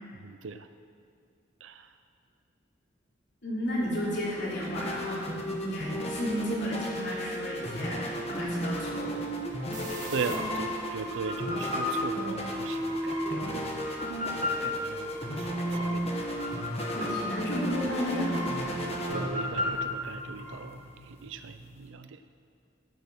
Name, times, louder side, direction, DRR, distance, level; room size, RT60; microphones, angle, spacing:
voice 1, 0.2-0.7 1.6-1.9 9.7-13.8 14.3-16.1 19.1-22.2, right 5 dB, 70° right, 10 dB, 0.4 m, -39 dB
voice 2, 3.4-9.2 16.9-18.7, equal, 65° left, -6 dB, 3.3 m, -33 dB
sound 1, 3.6-21.9, equal, 35° left, 1.3 m, -34 dB
sound 2, 9.7-20.5, left 2 dB, 45° right, 2.0 m, -36 dB
14.0 x 6.8 x 6.1 m, 2.3 s
head